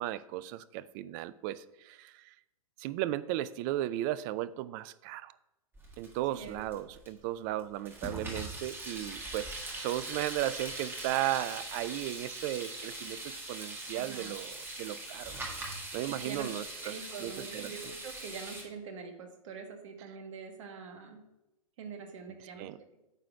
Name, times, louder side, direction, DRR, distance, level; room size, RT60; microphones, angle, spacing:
voice 1, 0.0-2.3 2.8-5.3 6.0-15.4 15.9-17.9 22.6-22.8, right 14 dB, 35° right, 17 dB, 0.3 m, -36 dB
sound 1, 5.7-7.2 7.6-18.6, right 2 dB, 10° right, 1.7 m, -41 dB
voice 2, 6.2-6.6 13.9-14.3 16.1-16.5 16.8-21.2 21.8-22.7, right 5 dB, 60° right, 6 dB, 1.4 m, -44 dB
9.0 x 4.0 x 5.6 m, 0.94 s
hypercardioid pair, 115°, 18 cm